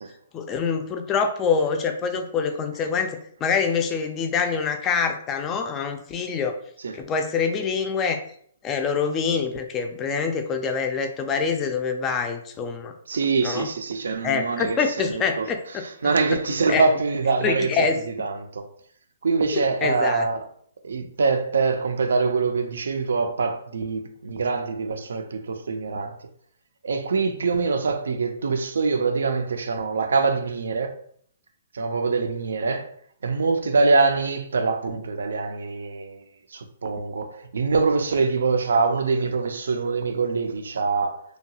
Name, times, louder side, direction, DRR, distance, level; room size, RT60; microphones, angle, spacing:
voice 1, 0.3-6.6 6.9-8.2 8.6-12.9 13.4-13.7 14.2-15.8 16.7-16.8 17.4-18.0 19.5-20.3, left 5 dB, 20° left, 0.3 m, -25 dB
voice 2, 13.1-18.7 19.2-20.5 20.8-26.2 26.8-31.0 31.7-32.9 33.2-36.2 36.5-41.2, right 4 dB, 75° right, 0.4 m, -24 dB
2.8 x 2.2 x 2.8 m
hypercardioid pair, 140°, 0 cm